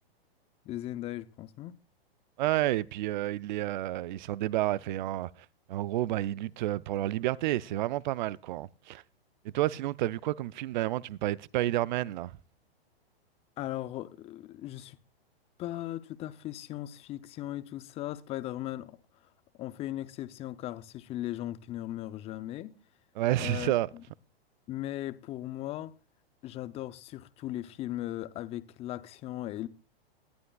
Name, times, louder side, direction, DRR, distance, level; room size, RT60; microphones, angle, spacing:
voice 1, 0.7-1.7 13.6-15.0 15.6-19.0 19.5-22.7 23.4-24.0 24.7-25.9 26.4-29.7, left 14 dB, 20° left, 0.5 m, -38 dB
voice 2, 2.4-5.3 5.7-9.0 9.5-12.4 23.2-23.9, right 15 dB, 50° right, 0.5 m, -30 dB
19.5 x 11.5 x 2.3 m
hypercardioid pair, 125°, 31 cm